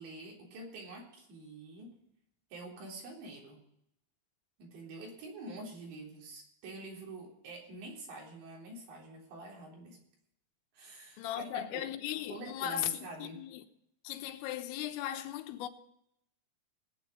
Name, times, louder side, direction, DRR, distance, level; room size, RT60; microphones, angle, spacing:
voice 1, 0.0-2.0 2.5-3.6 4.6-10.0 10.7-11.9 12.3-13.4, right 2 dB, 65° right, 5.8 m, -47 dB
voice 2, 11.2-13.6 14.1-15.7, left 11 dB, 90° left, 3.5 m, -37 dB
20.0 x 9.0 x 5.2 m
omnidirectional pair, 5.7 m